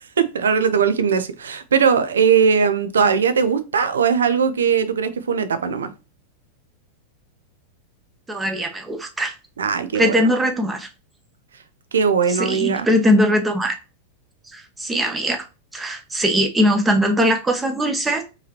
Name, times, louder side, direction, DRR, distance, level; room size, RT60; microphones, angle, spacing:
voice 1, 0.2-5.9 9.6-10.3 11.9-12.9, right 6 dB, 65° right, 0.5 m, -19 dB
voice 2, 8.3-9.3 9.9-10.9 12.4-13.7 14.5-15.4 15.7-18.2, equal, 10° right, 0.9 m, -20 dB
4.6 x 3.1 x 3.0 m
figure-of-eight pair, 90°, 0 cm